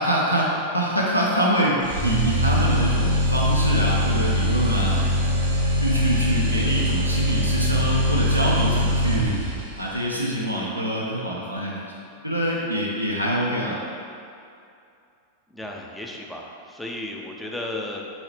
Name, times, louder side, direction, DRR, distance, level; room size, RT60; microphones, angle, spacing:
voice 1, 0.0-5.0 5.8-9.4 9.8-11.9 12.2-13.8, right 1 dB, 90° left, -4 dB, 0.5 m, -25 dB
sound 1, 1.8-9.8, equal, 80° right, 0.8 m, -22 dB
voice 2, 4.9-5.3 15.5-18.0, left 1 dB, 5° left, 0 dB, 0.5 m, -34 dB
5.4 x 2.8 x 3.2 m, 2.5 s
figure-of-eight pair, 90°, 0 cm